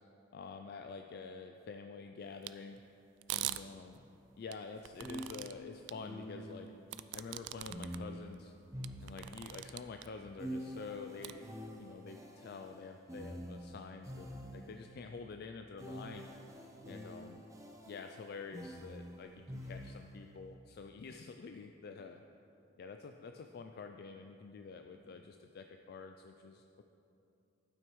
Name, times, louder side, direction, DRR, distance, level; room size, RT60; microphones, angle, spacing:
voice 1, 0.3-2.8 3.3-4.0 4.4-6.7 7.1-8.5 9.0-11.5 11.8-16.3 16.8-17.4 17.9-22.2 22.8-26.8, left 4 dB, 55° left, 5 dB, 0.3 m, -48 dB
sound 1, 2.4-2.5 3.2-3.6 4.5-5.5 5.9-6.0 6.9-8.0 8.4-8.5 8.8-10.1 11.2-11.3, right 14 dB, 65° right, 0.3 m, -41 dB
sound 2, 4.0-4.1 5.0-6.8 7.7-9.6 10.4-14.9 15.8-20.3, equal, 15° right, 0.8 m, -47 dB
12.5 x 9.0 x 3.1 m, 2.8 s
head